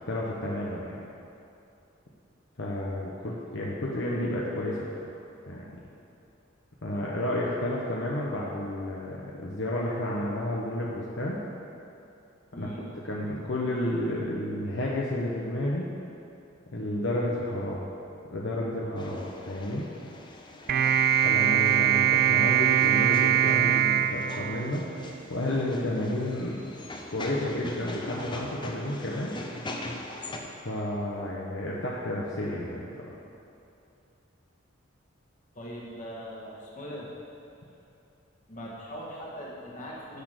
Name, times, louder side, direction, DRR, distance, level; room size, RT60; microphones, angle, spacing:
voice 1, 0.1-1.0 2.6-4.8 5.5-5.6 6.8-11.4 12.6-12.7 13.0-15.9 16.7-17.9 18.3-19.9 21.2-24.8 25.3-26.6 27.1-29.4 30.6-33.1, left 1 dB, 65° left, -4 dB, 1.1 m, -31 dB
voice 2, 12.5-12.9 20.7-21.0 35.5-37.1 38.5-40.2, equal, 40° left, -4 dB, 2.0 m, -40 dB
sound 1, 19.0-30.4, left 1 dB, 25° left, 0.8 m, -42 dB
sound 2, 20.7-25.2, right 9 dB, 50° right, 0.3 m, -23 dB
10.0 x 6.3 x 6.6 m, 2.7 s
head